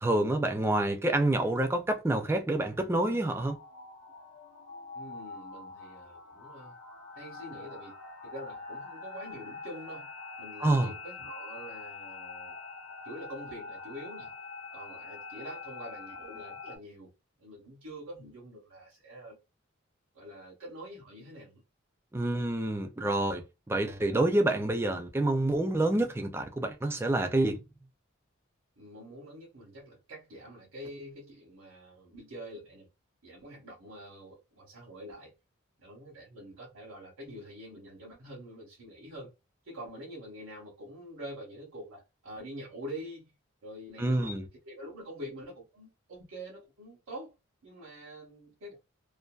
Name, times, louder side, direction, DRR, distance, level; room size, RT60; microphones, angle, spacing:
voice 1, 0.0-3.6 10.6-10.9 22.1-27.6 44.0-44.5, right 1 dB, 10° right, 0.4 m, -27 dB
sound 1, 2.5-16.8, left 4 dB, 80° left, 0.8 m, -45 dB
voice 2, 4.9-6.7 7.1-7.9 8.2-12.6 13.0-14.4 14.7-17.1 17.4-19.4 20.1-21.6 28.8-32.9 33.2-35.3 35.8-39.3 39.6-43.3 43.6-44.3 44.6-47.3 47.6-48.8, equal, 85° right, 0.9 m, -45 dB
2.6 x 2.4 x 2.3 m
head